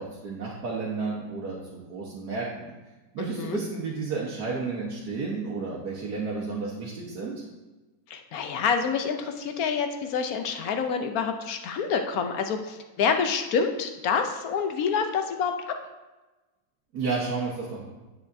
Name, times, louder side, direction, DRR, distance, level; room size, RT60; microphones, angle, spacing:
voice 1, 0.0-2.7 3.1-7.3 16.9-17.8, right 4 dB, 65° right, -5 dB, 1.7 m, -32 dB
voice 2, 3.2-3.6 8.1-15.8, left 6 dB, 65° left, 6 dB, 1.0 m, -27 dB
9.8 x 7.1 x 2.6 m, 1.1 s
omnidirectional pair, 1.9 m